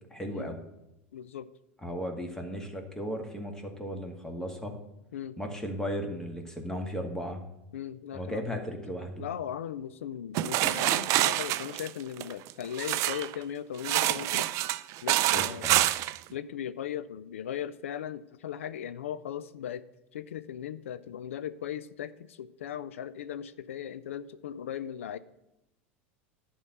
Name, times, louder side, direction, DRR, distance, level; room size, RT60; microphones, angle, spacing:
voice 1, 0.1-0.6 1.8-4.8 5.4-7.4 8.1-9.2 15.3-15.8, equal, 10° left, 3 dB, 2.0 m, -36 dB
voice 2, 1.1-1.5 5.1-5.4 7.7-8.4 9.2-14.5 15.0-15.7 16.3-19.9 20.1-25.2, left 9 dB, 80° left, 15 dB, 0.5 m, -38 dB
sound 1, 10.3-13.3 13.8-16.2, right 15 dB, 50° right, 0.4 m, -27 dB
11.0 x 4.5 x 7.7 m, 0.88 s
hypercardioid pair, 90°, 7 cm